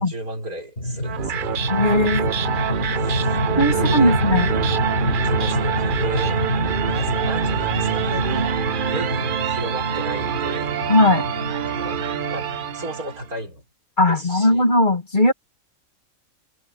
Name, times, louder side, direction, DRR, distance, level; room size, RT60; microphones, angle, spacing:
voice 1, 0.0-1.5 3.0-3.3 3.7-4.2 5.2-6.4 6.9-8.5 8.9-10.8 11.8-12.0 12.3-12.5 12.7-13.6 14.1-14.7, right 2 dB, 80° right, 6.0 m, -34 dB
sound 1, 0.8-13.0, left 1 dB, 50° left, 6.2 m, -26 dB
sound 2, 1.0-13.3, right 9 dB, 50° right, 0.6 m, -25 dB
voice 2, 1.7-2.3 3.6-4.5 10.9-11.2 14.0-15.3, left 1 dB, 35° left, 2.1 m, -18 dB
omnidirectional pair, 1.5 m